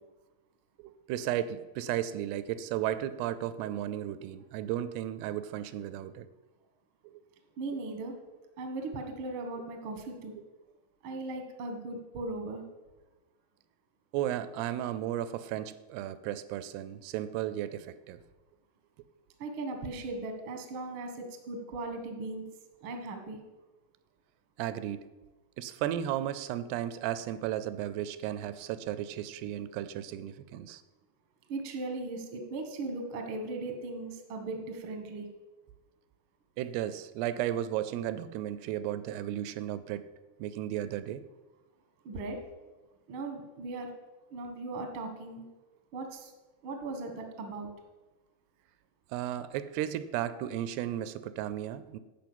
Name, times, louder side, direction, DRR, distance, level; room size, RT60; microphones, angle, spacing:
voice 1, 0.8-6.3 7.1-7.2 7.7-7.8 10.4-10.5 14.1-18.2 24.6-25.1 25.6-30.8 36.6-40.1 40.4-41.2 49.1-52.0, right 12 dB, 85° right, 14 dB, 2.6 m, -34 dB
voice 2, 7.6-8.1 8.6-10.4 11.0-12.6 19.4-22.5 22.8-23.4 31.5-35.3 42.0-42.4 43.1-43.9 44.3-45.4 45.9-46.3 46.6-47.7, right 2 dB, 70° right, 4 dB, 1.2 m, -38 dB
10.5 x 5.0 x 7.8 m, 1.1 s
omnidirectional pair, 4.6 m